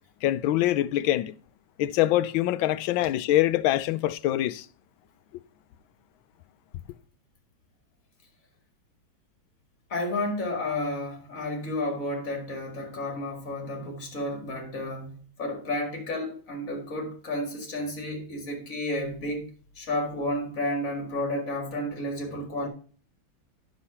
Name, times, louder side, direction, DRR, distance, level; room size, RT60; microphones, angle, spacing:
voice 1, 0.2-1.3 1.8-4.7, left 14 dB, 80° left, 1.3 m, -24 dB
voice 2, 9.9-19.5 19.8-22.7, left 1 dB, 45° left, 2.4 m, -31 dB
9.8 x 6.8 x 4.2 m
omnidirectional pair, 2.2 m